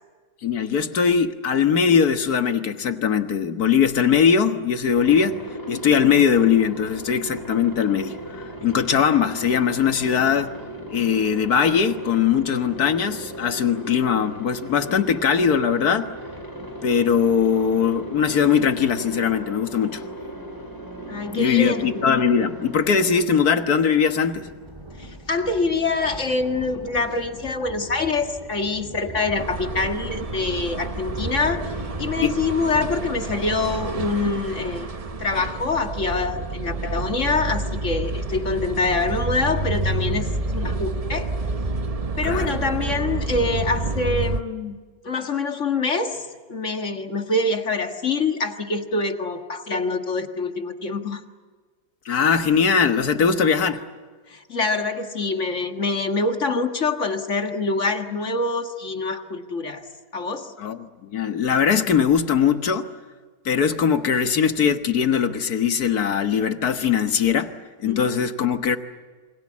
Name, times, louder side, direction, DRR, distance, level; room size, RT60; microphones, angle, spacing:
voice 1, 0.4-5.4 5.7-10.6 10.9-16.1 16.8-20.0 21.3-24.5 32.2-32.4 42.2-42.5 52.1-53.8 60.6-62.9 63.5-68.8, left 7 dB, 65° left, 9 dB, 1.8 m, -20 dB
Aircraft, 4.9-23.2, right 1 dB, 10° left, 5.5 m, -37 dB
voice 2, 21.1-22.0 25.0-34.9 35.2-41.3 42.2-44.8 45.0-51.2 54.3-59.9 60.1-60.5 67.8-68.0, left 3 dB, 45° left, 6 dB, 2.0 m, -25 dB
Thunder, 23.6-35.9, right 1 dB, 15° right, 2.9 m, -39 dB
sound 1, 29.3-44.4, right 2 dB, 30° right, 0.6 m, -29 dB
28.0 x 25.0 x 7.4 m, 1.5 s
omnidirectional pair, 1.8 m